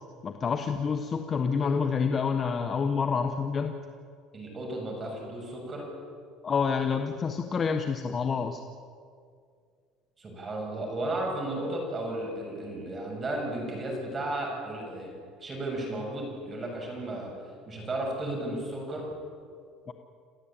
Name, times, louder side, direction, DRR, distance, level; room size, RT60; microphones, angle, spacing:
voice 1, 0.2-3.7 6.4-8.6 11.6-11.7 19.9-20.0, left 5 dB, 30° left, 5 dB, 1.2 m, -28 dB
voice 2, 4.3-5.9 10.2-15.1 15.4-17.3 17.7-19.1, right 1 dB, 25° right, 0 dB, 7.1 m, -34 dB
27.5 x 15.5 x 8.9 m, 2.2 s
cardioid pair, 140°, 0 cm